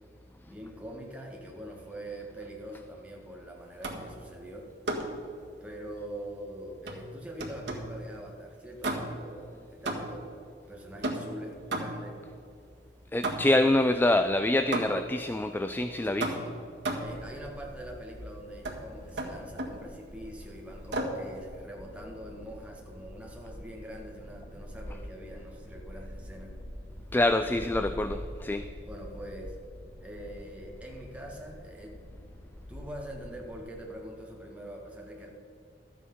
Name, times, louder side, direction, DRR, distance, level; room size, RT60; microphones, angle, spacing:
voice 1, 0.4-4.7 5.6-10.2 10.7-12.2 16.0-16.5 17.0-26.5 28.9-29.6 30.0-32.0 32.7-35.3, right 1 dB, 10° right, -1 dB, 1.8 m, -44 dB
sound 1, 3.8-4.2 4.9-5.2 6.9-8.0 8.8-9.3 9.9-10.3 11.0-12.2 13.2-13.7 14.7-15.2 16.2-17.2 18.6-18.8 19.2-19.8 20.9-21.3, right 2 dB, 85° right, 1.7 m, -34 dB
voice 2, 13.1-16.3 27.1-28.7, left 1 dB, 10° left, 9 dB, 0.3 m, -26 dB
sound 2, 17.0-33.6, equal, 50° left, 2.0 m, -46 dB
12.5 x 8.5 x 5.5 m, 2.4 s
head